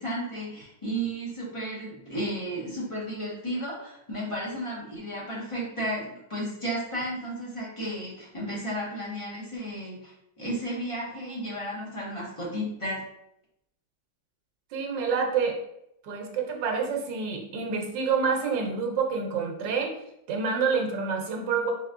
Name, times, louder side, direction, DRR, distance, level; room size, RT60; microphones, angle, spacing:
voice 1, 0.0-13.0, right 1 dB, 20° left, -6 dB, 1.1 m, -33 dB
voice 2, 14.7-15.6 16.0-19.9 20.3-21.7, right 5 dB, 85° right, 2 dB, 1.4 m, -27 dB
4.1 x 3.5 x 2.5 m, 0.79 s
omnidirectional pair, 1.9 m